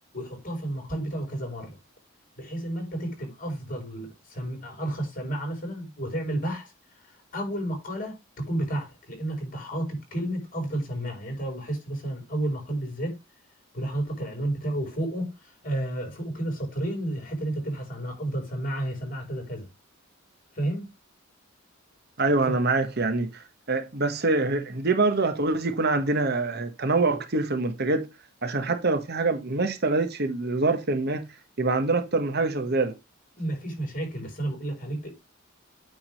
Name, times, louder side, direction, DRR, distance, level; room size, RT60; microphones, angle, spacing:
voice 1, 0.1-1.8 2.4-6.7 7.0-13.2 13.7-19.7 20.5-20.9 22.4-22.6 33.4-35.1, right 1 dB, 40° left, 5.6 m, -31 dB
voice 2, 22.2-28.1 28.4-31.2 31.6-32.9, right 3 dB, 50° right, 1.2 m, -25 dB
9.0 x 3.8 x 6.3 m
head